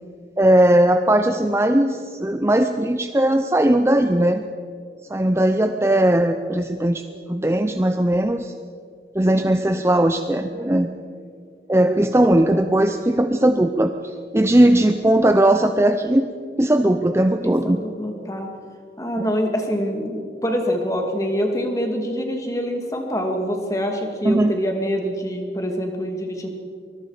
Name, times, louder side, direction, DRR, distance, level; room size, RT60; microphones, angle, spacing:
voice 1, 0.4-4.4 5.1-7.0 7.3-8.5 9.1-10.9 11.7-13.9 14.3-16.3 16.6-17.8 24.2-24.5, right 1 dB, 15° right, 7 dB, 0.6 m, -18 dB
voice 2, 17.4-18.5 19.0-26.5, equal, 20° left, 3 dB, 2.4 m, -25 dB
24.5 x 21.5 x 5.0 m, 2.3 s
head